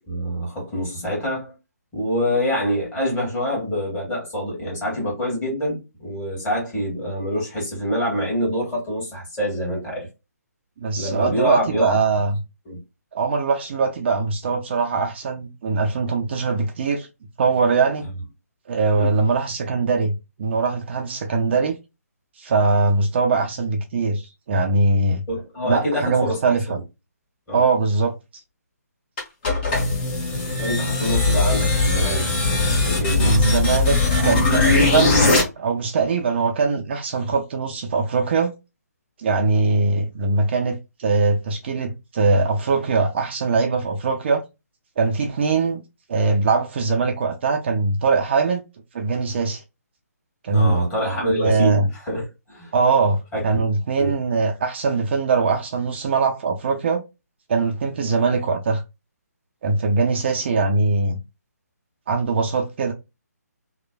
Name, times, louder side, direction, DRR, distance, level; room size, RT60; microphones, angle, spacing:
voice 1, 0.1-1.5 1.9-10.1 10.9-12.0 12.6-12.8 18.9-19.1 25.3-26.8 27.5-27.6 30.6-33.4 50.5-52.7 53.3-53.7 54.0-54.2, equal, 15° left, 1.6 m, -25 dB
voice 2, 10.8-12.4 13.1-17.1 17.4-18.0 18.7-21.8 22.4-25.2 25.7-26.8 27.5-28.1 33.2-35.2 35.6-38.5 39.2-44.4 45.0-45.8 46.1-48.6 48.9-49.6 50.4-50.8 51.2-51.8 52.7-53.2 53.4-57.0 57.5-58.8 59.6-61.2 62.1-62.9, right 4 dB, 40° right, 0.4 m, -21 dB
sound 1, 29.2-35.4, left 3 dB, 35° left, 1.2 m, -20 dB
3.1 x 2.1 x 2.3 m
figure-of-eight pair, 150°, 9 cm